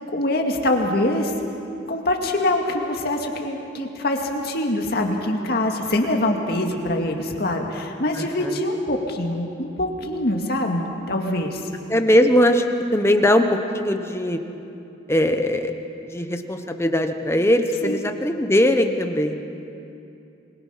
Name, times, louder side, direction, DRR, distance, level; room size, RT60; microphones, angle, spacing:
voice 1, 0.1-1.3 1.9-11.6 17.8-18.0, left 1 dB, 55° left, 2 dB, 2.2 m, -24 dB
voice 2, 8.2-8.6 11.9-12.6 12.9-14.4 15.1-15.7 16.0-19.4, left 1 dB, 15° left, 6 dB, 1.0 m, -20 dB
26.5 x 21.5 x 5.8 m, 2.8 s
head